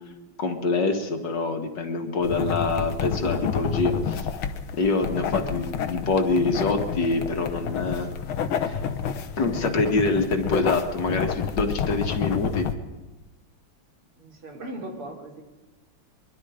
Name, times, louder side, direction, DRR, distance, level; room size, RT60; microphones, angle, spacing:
voice 1, 0.4-4.3 4.7-8.1 8.7-8.8 9.4-12.7, left 3 dB, 55° left, 4 dB, 2.2 m, -25 dB
sound 1, 2.2-12.8, left 7 dB, 75° left, 1.9 m, -29 dB
voice 2, 14.2-15.4, right 1 dB, 80° right, 1 dB, 4.0 m, -38 dB
23.0 x 23.0 x 5.0 m, 1.2 s
omnidirectional pair, 2.4 m